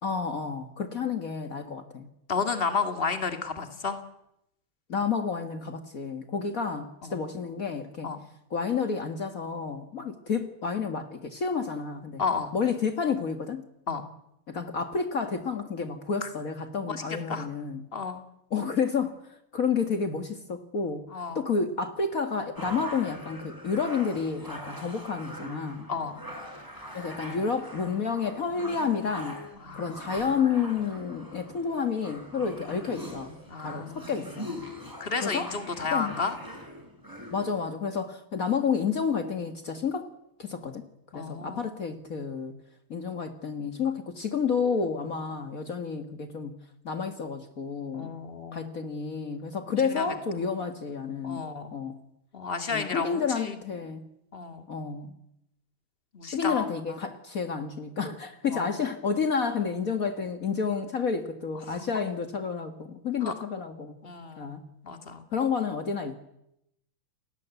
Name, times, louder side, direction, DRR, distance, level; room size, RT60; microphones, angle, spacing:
voice 1, 0.0-2.1 4.9-8.1 8.5-12.2 12.5-13.7 14.5-17.9 18.5-19.2 19.5-21.1 21.3-25.9 26.9-29.4 29.7-34.5 35.2-35.5 35.9-36.1 37.3-40.1 40.4-40.9 41.1-42.5 42.9-46.5 46.8-48.1 48.5-52.0 52.7-54.1 54.7-55.1 56.3-64.0 64.4-64.6 65.3-66.1, left 5 dB, 70° left, 7 dB, 0.8 m, -30 dB
voice 2, 2.3-4.0 7.0-7.2 8.0-8.2 12.2-12.5 13.9-14.0 16.2-16.3 16.9-17.0 17.3-17.5 17.9-18.2 21.1-21.5 25.9-26.2 29.6-30.0 33.5-34.3 35.0-36.4 41.1-41.7 47.9-48.7 49.7-50.1 51.2-51.7 52.3-53.6 54.3-54.7 56.1-57.0 58.5-58.8 61.7-61.9 63.2-63.3 64.0-64.5 64.8-65.3, left 5 dB, 25° left, 7 dB, 1.3 m, -32 dB
sound 1, 22.6-37.5, equal, 5° right, 5.6 m, -42 dB
29.0 x 19.0 x 8.2 m, 0.83 s
omnidirectional pair, 4.2 m